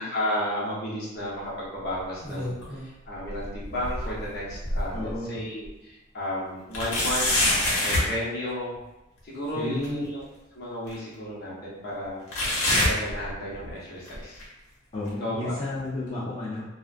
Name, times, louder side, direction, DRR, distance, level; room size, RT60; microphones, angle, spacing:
voice 1, 0.0-7.3 7.8-8.8 9.2-10.3 10.5-14.4 15.2-15.5, left 1 dB, 50° left, -7 dB, 0.8 m, -33 dB
sound 1, 2.0-2.9 3.3-5.2 5.7-5.8 6.7-8.1 9.8-9.9 10.9-11.0 12.3-13.7 14.1-14.4 15.1-15.2 16.1-16.2, left 1 dB, 90° left, 0.9 m, -26 dB
voice 2, 4.9-5.4 9.5-10.1 14.9-16.6, left 2 dB, 30° left, -9 dB, 0.4 m, -32 dB
2.4 x 2.2 x 2.4 m, 0.94 s
head